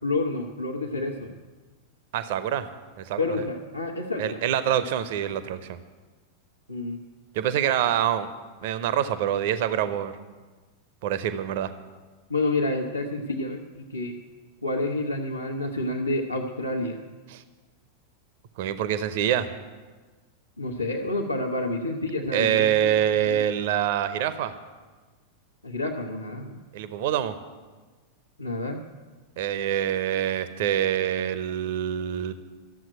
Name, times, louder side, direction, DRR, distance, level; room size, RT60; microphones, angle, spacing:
voice 1, 0.0-1.4 3.2-4.4 6.7-7.0 12.3-14.2 14.6-17.0 20.6-22.9 23.2-23.3 25.6-26.6 28.4-28.8, left 2 dB, 90° left, -3 dB, 1.0 m, -29 dB
voice 2, 2.1-2.7 3.0-3.2 4.2-5.8 7.3-8.3 8.6-10.1 11.0-11.7 17.3-17.4 18.6-19.5 22.3-24.6 26.7-27.4 29.4-32.3, right 10 dB, 50° right, 13 dB, 0.7 m, -25 dB
13.0 x 7.7 x 9.1 m, 1.4 s
figure-of-eight pair, 90°, 0 cm